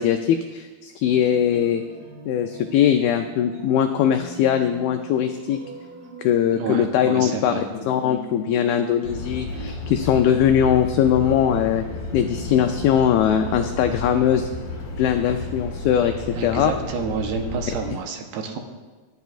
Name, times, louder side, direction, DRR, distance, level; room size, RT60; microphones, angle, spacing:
voice 1, 0.0-1.8 2.3-5.6 6.2-11.8 12.1-14.5 15.0-16.7, left 9 dB, 85° left, 6 dB, 2.1 m, -21 dB
sound 1, 1.0-14.4, right 3 dB, 50° right, 2.5 m, -41 dB
voice 2, 6.5-7.7 16.3-18.6, right 5 dB, 75° right, 3 dB, 2.7 m, -29 dB
sound 2, 9.0-17.9, left 2 dB, 50° left, 2.5 m, -32 dB
25.0 x 9.3 x 2.5 m, 1.3 s
omnidirectional pair, 4.8 m